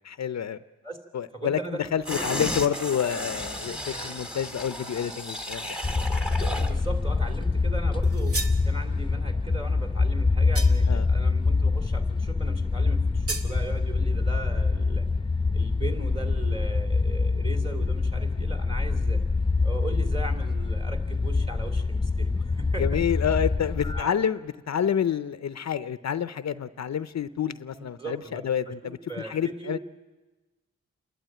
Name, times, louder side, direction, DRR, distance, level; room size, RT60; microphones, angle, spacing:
voice 1, 0.0-0.6 1.1-1.6 1.9-5.8 10.9-11.1 22.8-29.8, left 8 dB, 65° left, 13 dB, 0.6 m, -28 dB
voice 2, 1.3-1.8 2.1-2.2 6.5-15.1 15.5-19.2 19.6-23.0 23.8-24.1 27.7-28.7 29.1-29.8, right 3 dB, 20° right, 4 dB, 3.2 m, -38 dB
sound 1, 2.0-6.8 7.2-7.3, equal, 5° right, 2.0 m, -34 dB
sound 2, 5.8-24.0, left 3 dB, 15° left, 0.8 m, -25 dB
sound 3, 8.0-8.6 10.5-11.0 13.3-13.5, right 2 dB, 50° right, 1.8 m, -33 dB
28.5 x 12.0 x 8.9 m, 1.2 s
cardioid pair, 70°, 30 cm